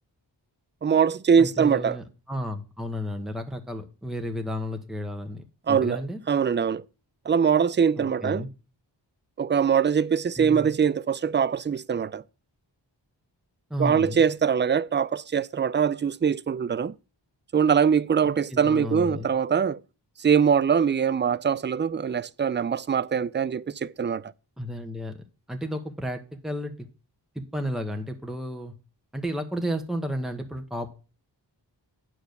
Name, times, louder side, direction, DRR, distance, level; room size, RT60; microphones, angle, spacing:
voice 1, 0.8-2.0 5.7-6.0 6.3-6.8 7.3-8.4 9.4-12.2 13.8-16.9 17.5-19.8 20.2-24.3, right 7 dB, 30° right, 0.4 m, -23 dB
voice 2, 1.4-6.2 8.0-8.5 10.4-10.8 13.7-14.2 18.2-19.3 24.6-25.2 25.5-26.9 27.3-28.7 29.1-30.9, equal, ahead, 1.1 m, -32 dB
8.9 x 4.8 x 6.5 m
wide cardioid pair, 60°, 44 cm